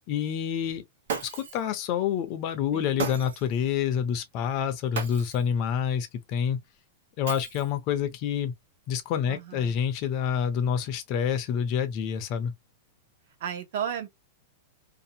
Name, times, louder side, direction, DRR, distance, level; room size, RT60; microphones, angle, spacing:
voice 1, 0.1-0.8 1.3-6.6 7.2-8.5 8.9-12.5, left 8 dB, 35° left, 0.4 m, -28 dB
Shatter, 1.1-1.7 3.0-3.6 4.9-5.5 7.3-7.9, right 5 dB, 85° right, 1.0 m, -35 dB
voice 2, 2.7-3.0 9.3-9.8 13.4-14.1, right 8 dB, 50° right, 0.6 m, -34 dB
2.6 x 2.1 x 2.7 m
supercardioid pair, 170°, 0 cm